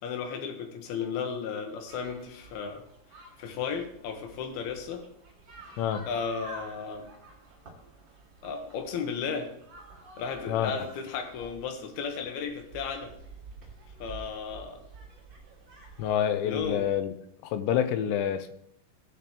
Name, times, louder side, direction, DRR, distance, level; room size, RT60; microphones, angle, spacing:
voice 1, 0.0-2.8 3.4-5.0 6.1-7.1 8.4-9.5 10.2-13.1 14.0-14.8 16.4-16.8, left 6 dB, 70° left, 4 dB, 2.9 m, -34 dB
sound 1, 1.9-17.0, right 2 dB, 80° right, 1.0 m, -50 dB
voice 2, 16.0-17.1 17.4-18.5, left 9 dB, 85° left, 10 dB, 2.9 m, -27 dB
19.0 x 6.9 x 3.1 m, 0.70 s
omnidirectional pair, 5.3 m